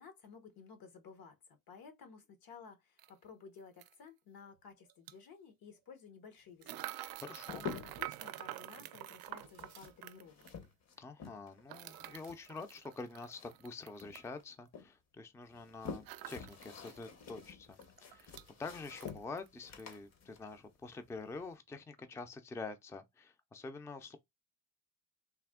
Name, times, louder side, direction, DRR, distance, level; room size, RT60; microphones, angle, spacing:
voice 1, 0.0-6.9 7.1-7.2 7.6-10.5, left 6 dB, 75° left, 1.1 m, -55 dB
sound 1, 3.0-3.1 3.8-3.9 4.9-5.1 6.6-10.6 11.7-14.3 16.0-17.1 17.4-17.5 17.8-18.5 18.8-19.5 19.8-20.0, right 14 dB, 80° right, 0.5 m, -47 dB
sound 2, 6.8-8.2 9.3-11.6 11.9-13.7 14.0-14.9 15.4-21.5, left 6 dB, 45° left, 0.8 m, -49 dB
voice 2, 7.2-7.6 11.0-18.3 18.6-24.2, left 3 dB, 10° left, 0.4 m, -47 dB
3.3 x 2.6 x 3.5 m
cardioid pair, 140°, 35 cm